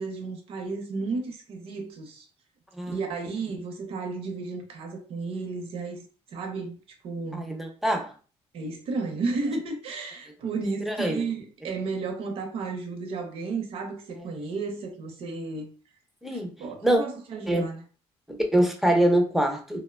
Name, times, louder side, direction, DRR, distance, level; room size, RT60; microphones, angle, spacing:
voice 1, 0.0-2.2 2.9-6.0 6.3-6.8 7.0-7.5 8.5-15.7 16.6-17.8, right 4 dB, 55° right, 0.7 m, -33 dB
voice 2, 7.3-8.1 10.8-11.2 14.2-14.3 16.2-16.5 16.8-17.0 17.5-17.7 18.3-19.8, right 1 dB, ahead, 0.4 m, -24 dB
2.8 x 2.1 x 2.3 m
cardioid pair, 145°, 11 cm